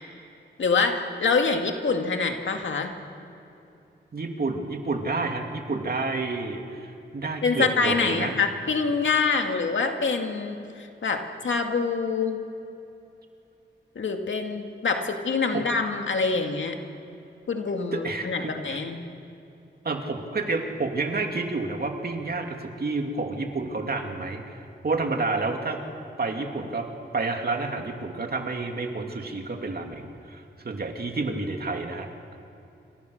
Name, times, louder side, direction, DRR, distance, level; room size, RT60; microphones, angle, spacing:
voice 1, 0.6-2.9 7.4-12.4 14.0-16.8 17.5-19.0, left 4 dB, 85° left, 4 dB, 2.2 m, -25 dB
voice 2, 4.1-8.3 15.5-15.6 17.9-18.8 19.8-25.8 26.2-26.9 27.1-32.4, right 3 dB, 55° right, 3 dB, 2.7 m, -30 dB
28.0 x 26.5 x 6.6 m, 2.8 s
wide cardioid pair, 105°, 19 cm